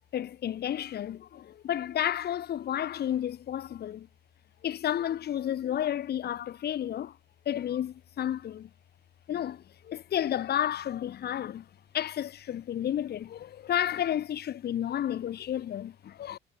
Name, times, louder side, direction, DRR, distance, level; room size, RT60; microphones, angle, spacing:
voice 1, 0.1-4.1 4.6-7.2 7.5-8.7 9.3-11.7 11.9-16.4, left 11 dB, 55° left, 0.7 m, -31 dB
cardioid pair, 90°, 20 cm